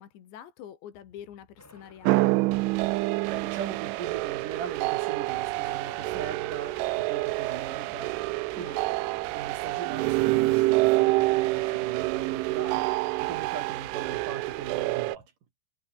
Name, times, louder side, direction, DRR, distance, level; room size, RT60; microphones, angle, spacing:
voice 1, 0.0-2.4 8.5-8.8, left 10 dB, 65° left, 4.4 m, -46 dB
sound 1, 0.9-15.3, left 8 dB, 90° left, 6.8 m, -61 dB
sound 2, 1.6-3.1 5.0-8.1 9.6-12.8 14.3-14.9, left 1 dB, 5° left, 2.7 m, -52 dB
sound 3, 2.0-15.2, right 21 dB, 85° right, 3.0 m, -27 dB
voice 2, 3.3-8.2 8.6-8.8 9.3-12.9 13.2-15.3, right 7 dB, 50° right, 3.5 m, -40 dB
omnidirectional pair, 5.9 m